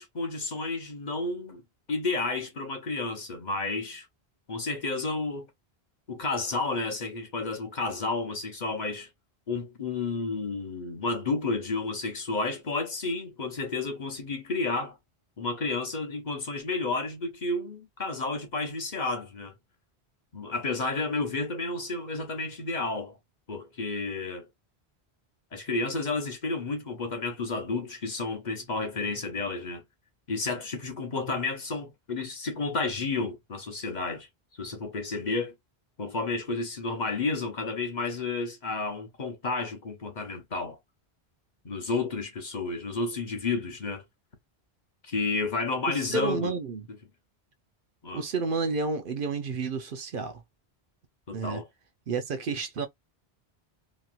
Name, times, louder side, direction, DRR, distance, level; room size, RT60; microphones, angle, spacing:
voice 1, 0.0-1.6 1.9-4.1 4.5-5.5 6.1-9.1 9.5-15.0 15.4-19.5 20.3-23.2 23.5-24.5 25.5-29.8 30.3-34.3 34.6-35.5 36.0-40.8 41.6-44.0 45.0-46.6 48.0-48.2 51.3-51.7, left 3 dB, 45° left, 1.0 m, -31 dB
voice 2, 46.1-46.8 48.1-50.4 51.3-51.6 52.1-52.9, right 4 dB, 60° right, 0.7 m, -30 dB
3.0 x 2.8 x 2.4 m
omnidirectional pair, 1.1 m